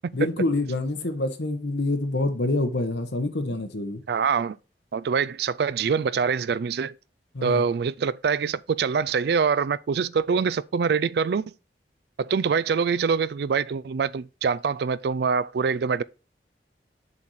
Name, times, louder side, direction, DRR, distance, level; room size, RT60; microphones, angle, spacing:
voice 1, 0.1-4.0 7.3-7.6, left 2 dB, 80° left, 1.2 m, -26 dB
voice 2, 4.1-4.6 4.9-6.9 7.4-11.4 12.2-16.0, right 6 dB, 65° right, 0.4 m, -24 dB
7.1 x 4.2 x 4.7 m
head